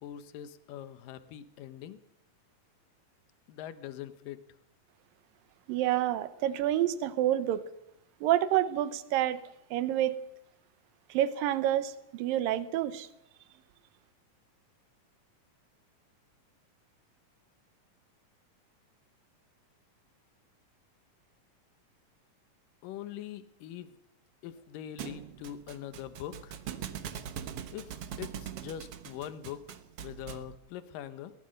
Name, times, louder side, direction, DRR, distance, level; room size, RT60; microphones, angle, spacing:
voice 1, 0.0-2.0 3.5-4.4 22.8-24.0 24.4-26.6 27.7-27.9 28.2-31.3, left 10 dB, 80° left, 12 dB, 2.7 m, -43 dB
voice 2, 5.7-7.7 8.2-9.4 9.7-10.2 11.1-13.1, right 12 dB, 90° right, 14 dB, 2.7 m, -28 dB
Thump thud, 25.0-30.6, right 9 dB, 60° right, 1.6 m, -42 dB
22.0 x 18.5 x 6.5 m, 0.81 s
omnidirectional pair, 3.9 m